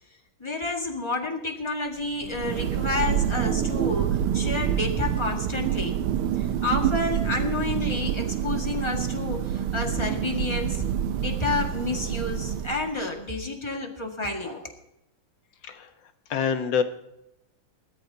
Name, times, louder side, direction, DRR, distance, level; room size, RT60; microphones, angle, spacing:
voice 1, 0.4-6.0 6.4-10.9 11.1-14.7, left 3 dB, 15° left, 2 dB, 1.8 m, -30 dB
Thunder, 2.1-13.1, right 10 dB, 85° right, 1.6 m, -27 dB
voice 2, 16.3-16.8, left 7 dB, 65° left, 8 dB, 1.8 m, -25 dB
21.0 x 13.5 x 2.8 m, 0.86 s
omnidirectional pair, 2.3 m